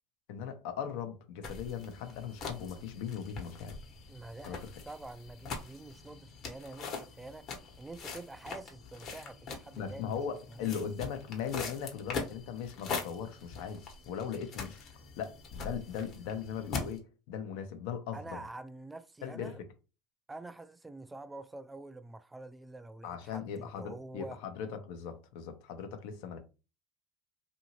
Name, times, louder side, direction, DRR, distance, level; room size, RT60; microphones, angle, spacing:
voice 1, 0.3-3.8 4.4-4.6 9.8-14.9 15.2-18.4 19.2-19.6 23.0-26.4, left 7 dB, 70° left, 0.7 m, -39 dB
sound 1, 1.4-17.0, left 4 dB, 50° left, 1.1 m, -43 dB
voice 2, 4.1-7.5 7.8-10.2 10.5-10.9 18.1-19.6 20.3-24.4, right 2 dB, 15° right, 0.3 m, -47 dB
2.7 x 2.6 x 2.9 m
hypercardioid pair, 85°, 0 cm